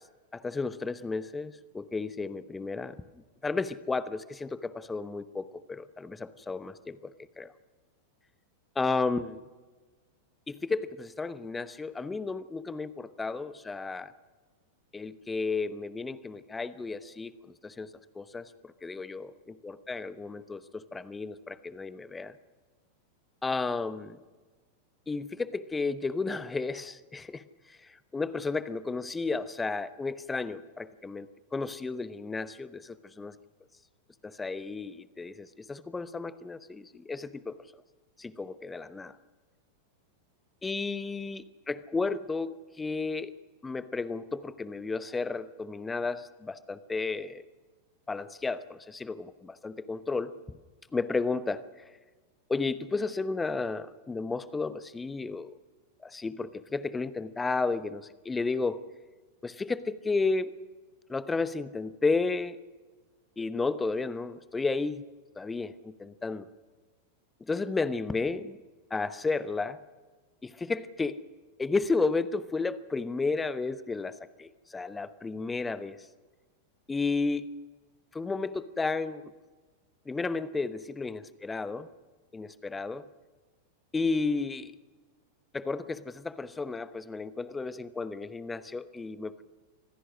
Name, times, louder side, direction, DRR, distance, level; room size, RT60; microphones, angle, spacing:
voice 1, 0.3-3.0 3.4-7.5 8.8-9.4 10.5-14.1 14.9-17.9 18.1-22.4 23.4-24.2 25.1-33.3 34.2-37.6 38.2-39.2 40.6-43.3 43.6-47.4 48.1-50.3 50.9-51.6 52.5-55.6 56.0-58.8 59.4-60.5 61.1-62.6 63.4-65.0 65.4-66.5 67.5-68.6 68.9-69.8 70.4-71.2 71.6-76.1 76.9-77.5 78.1-79.3 80.1-81.9 82.3-83.0 83.9-84.7 85.5-89.4, left 3 dB, 10° left, 15 dB, 1.0 m, -33 dB
25.5 x 16.5 x 6.3 m, 1.3 s
figure-of-eight pair, 90°, 0 cm